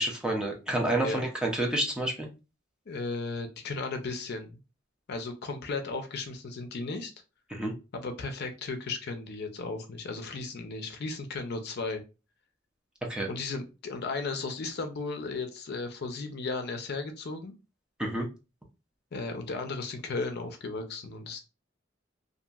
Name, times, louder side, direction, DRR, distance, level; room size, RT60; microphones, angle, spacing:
voice 1, 0.0-2.3 7.5-7.7 13.1-13.3 18.0-18.3, right 1 dB, 5° right, 0 dB, 0.6 m, -29 dB
voice 2, 2.9-4.6 5.1-7.1 7.9-12.0 13.3-17.5 19.1-21.4, left 3 dB, 55° left, 7 dB, 0.5 m, -35 dB
2.8 x 2.5 x 2.3 m, 0.30 s
head